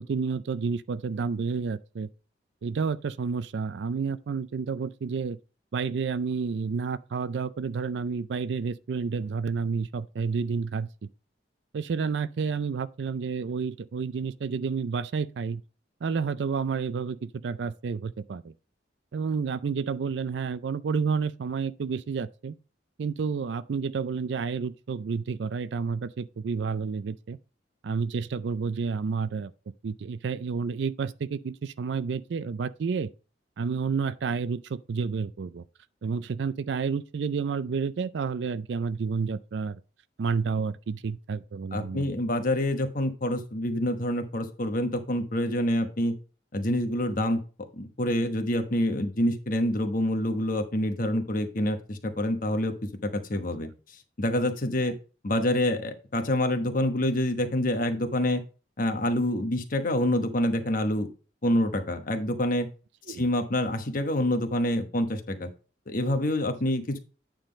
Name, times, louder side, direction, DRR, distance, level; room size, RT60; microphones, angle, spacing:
voice 1, 0.0-2.1 2.6-5.4 5.7-11.1 11.7-15.6 16.0-18.5 19.1-22.5 23.0-27.4 27.8-29.5 29.8-33.1 33.6-35.6 36.0-39.8 40.2-42.1 63.1-63.2, right 5 dB, 70° right, 0.4 m, -30 dB
voice 2, 41.7-46.1 46.5-47.4 47.8-53.7 54.2-54.9 55.2-58.4 58.8-61.1 61.4-62.7 63.1-65.5 65.9-67.0, left 1 dB, 50° left, 1.1 m, -27 dB
9.0 x 3.8 x 5.1 m
head